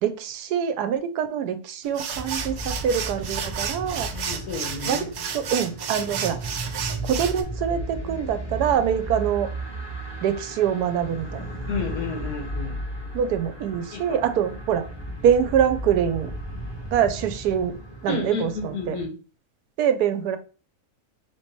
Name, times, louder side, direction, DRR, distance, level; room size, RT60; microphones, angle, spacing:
voice 1, 0.0-4.1 4.9-5.0 5.3-6.4 7.1-9.5 10.2-11.4 13.1-14.8 15.2-16.3 16.9-17.7 18.0-19.0 19.8-20.4, right 8 dB, 85° right, 9 dB, 1.1 m, -24 dB
sound 1, 1.8-7.4, right 7 dB, 70° right, 0.6 m, -32 dB
sound 2, 2.1-19.0, right 1 dB, 20° left, 1.1 m, -35 dB
voice 2, 4.1-5.1 11.7-12.7 13.9-14.2 18.1-19.2, left 4 dB, 80° left, 3 dB, 1.6 m, -31 dB
3.2 x 3.0 x 4.4 m, 0.37 s
omnidirectional pair, 1.7 m